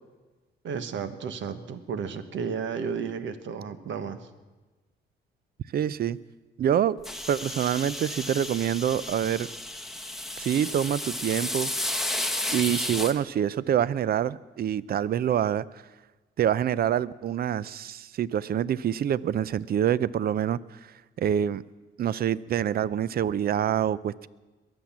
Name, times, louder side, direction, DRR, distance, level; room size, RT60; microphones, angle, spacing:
voice 1, 0.6-4.3, right 6 dB, 70° right, 11 dB, 1.3 m, -33 dB
voice 2, 5.7-6.2 6.6-7.0 7.3-9.5 10.4-11.9 12.5-15.6 16.4-20.6 21.2-21.6 22.0-24.3, right 10 dB, 50° right, 20 dB, 0.5 m, -26 dB
sound 1, 7.0-13.1, left 1 dB, ahead, 1.4 m, -32 dB
22.0 x 7.9 x 7.3 m, 1.2 s
cardioid pair, 90°, 20 cm